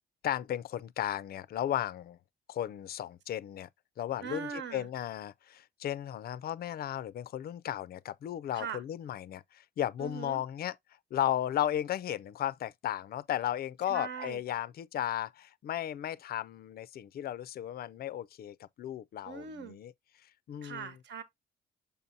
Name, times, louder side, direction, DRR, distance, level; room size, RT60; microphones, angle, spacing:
voice 1, 0.2-2.2 2.5-3.7 4.0-10.8 11.1-19.9 20.5-20.9, left 11 dB, 50° left, 0.4 m, -35 dB
voice 2, 4.2-4.9 8.5-8.8 10.0-10.4 13.9-14.4 19.3-19.8 20.6-21.2, right 6 dB, 65° right, 1.1 m, -40 dB
6.8 x 5.4 x 2.7 m
cardioid pair, 90°, 20 cm